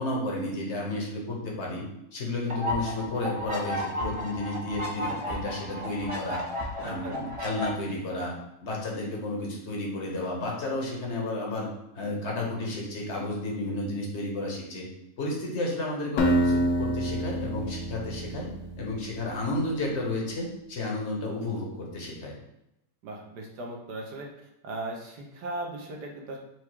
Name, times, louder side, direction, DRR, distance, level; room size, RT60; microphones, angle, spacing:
voice 1, 0.0-1.8 2.1-6.4 6.8-8.4 8.6-11.7 11.9-14.9 15.2-18.5 18.8-22.4, left 2 dB, 45° left, -2 dB, 1.1 m, -32 dB
sound 1, 2.5-7.7, left 1 dB, 55° right, 0.3 m, -33 dB
voice 2, 6.8-7.1 23.0-24.3 24.6-26.4, right 2 dB, 75° right, 1 dB, 1.4 m, -37 dB
Acoustic guitar, 16.2-19.2, right 1 dB, 85° left, 1.2 m, -27 dB
4.7 x 2.3 x 4.5 m, 0.84 s
omnidirectional pair, 1.8 m